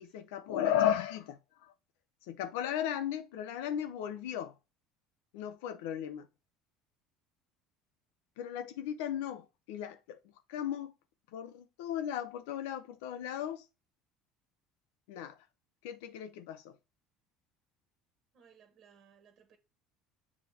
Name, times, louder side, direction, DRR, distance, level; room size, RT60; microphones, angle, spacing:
voice 1, 0.0-1.7 2.3-4.5 5.3-6.3 8.4-10.2 10.5-10.9 11.3-13.6 15.1-15.4 15.8-16.8, left 10 dB, 80° left, 0.9 m, -35 dB
voice 2, 18.3-19.6, right 7 dB, 50° right, 1.5 m, -62 dB
7.4 x 3.4 x 4.3 m
hypercardioid pair, 80°, 0 cm